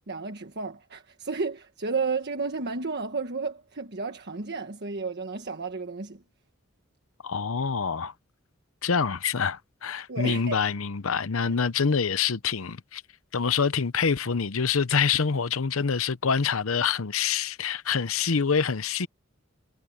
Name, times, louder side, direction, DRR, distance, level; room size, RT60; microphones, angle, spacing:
voice 1, 0.1-6.2 10.1-10.6 11.4-11.5, right 4 dB, 55° right, 1.4 m, -32 dB
voice 2, 7.2-8.1 8.8-13.0 13.3-19.1, left 6 dB, 75° left, 0.8 m, -26 dB
head